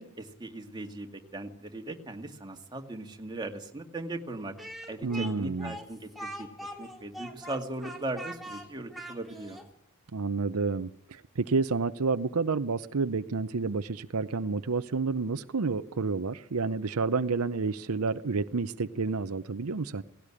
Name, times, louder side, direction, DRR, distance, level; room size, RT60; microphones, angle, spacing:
voice 1, 0.0-4.5 4.9-6.5 6.8-9.6, right 2 dB, 20° right, 2.1 m, -38 dB
Speech, 4.6-9.7, equal, ahead, 3.2 m, -42 dB
voice 2, 5.0-5.7 10.1-20.0, right 4 dB, 80° right, 0.7 m, -30 dB
18.0 x 17.0 x 9.9 m
head